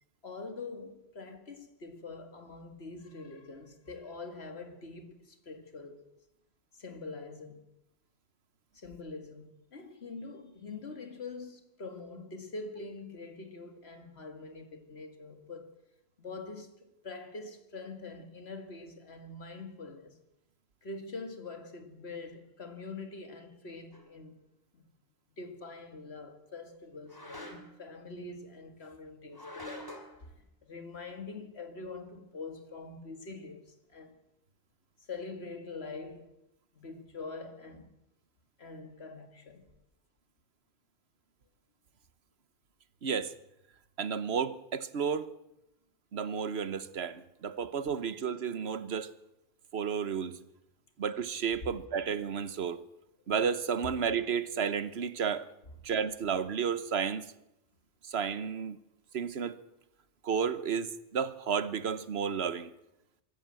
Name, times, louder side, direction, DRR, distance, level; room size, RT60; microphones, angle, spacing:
voice 1, 0.2-6.1 6.7-7.6 8.7-15.7 16.2-20.2 20.8-24.4 24.7-24.9 25.4-34.2 35.0-36.3 36.7-37.9 38.6-39.7, left 3 dB, 75° left, 2.3 m, -44 dB
sound 1, 23.9-24.1 27.1-27.9 29.3-30.2, equal, 20° left, 2.7 m, -45 dB
voice 2, 43.0-43.3 44.0-45.3 46.1-49.1 49.7-50.4 51.0-52.8 53.3-55.5 55.8-57.2 58.1-58.8 59.1-59.6 60.2-62.7, right 7 dB, 75° right, 1.2 m, -32 dB
24.5 x 13.5 x 7.6 m
omnidirectional pair, 1.1 m